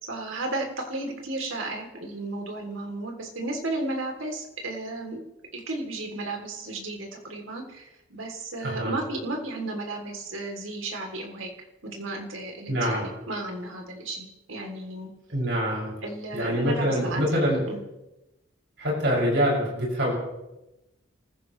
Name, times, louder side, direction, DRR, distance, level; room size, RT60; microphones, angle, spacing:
voice 1, 0.0-5.2 5.5-11.5 11.8-15.1 16.0-17.8, right 2 dB, 85° right, 2 dB, 3.2 m, -34 dB
voice 2, 8.6-8.9 12.7-13.1 15.3-15.9 16.3-17.6 18.8-20.1, equal, 65° right, -4 dB, 6.6 m, -25 dB
28.0 x 15.5 x 3.3 m, 0.97 s
head